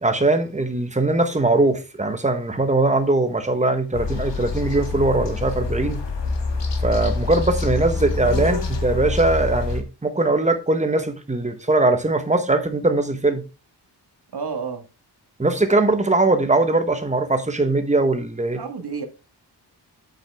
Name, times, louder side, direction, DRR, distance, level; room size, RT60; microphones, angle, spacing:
voice 1, 0.0-6.0 6.8-13.4 15.4-18.6, right 2 dB, 15° right, 1.2 m, -21 dB
sound 1, 3.9-9.8, left 3 dB, 90° left, 2.0 m, -26 dB
voice 2, 14.3-14.8 18.5-19.1, right 5 dB, 65° right, 1.8 m, -30 dB
8.8 x 6.6 x 3.5 m
wide cardioid pair, 155°, 41 cm